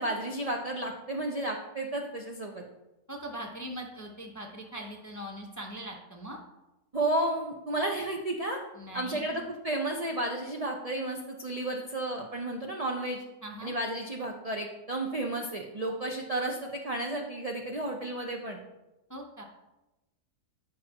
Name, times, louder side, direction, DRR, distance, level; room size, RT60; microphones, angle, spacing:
voice 1, 0.0-2.6 6.9-8.6 8.9-13.2 13.6-18.6, right 1 dB, 55° right, 0 dB, 0.4 m, -32 dB
voice 2, 3.1-6.4 8.8-9.5 13.4-13.7 19.1-19.4, right 1 dB, 20° left, 1 dB, 0.5 m, -41 dB
9.2 x 5.6 x 2.9 m, 0.99 s
omnidirectional pair, 1.7 m